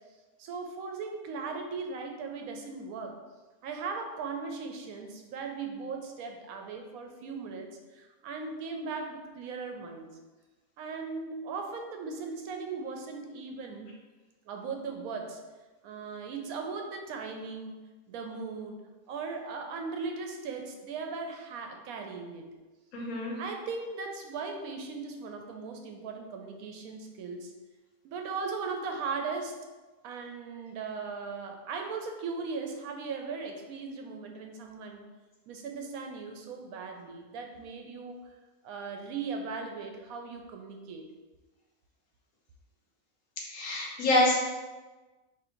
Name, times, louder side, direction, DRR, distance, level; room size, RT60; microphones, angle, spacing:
voice 1, 0.4-3.2 3.6-10.2 10.8-14.0 14.5-15.4 15.8-17.8 18.1-18.8 19.1-22.5 23.4-27.5 28.0-29.6 30.0-35.0 35.5-38.2 38.6-41.1, right 4 dB, 85° right, 3 dB, 1.0 m, -38 dB
voice 2, 22.9-23.4 43.4-44.4, left 1 dB, 85° left, -2 dB, 1.4 m, -26 dB
3.0 x 2.6 x 4.3 m, 1.2 s
omnidirectional pair, 1.5 m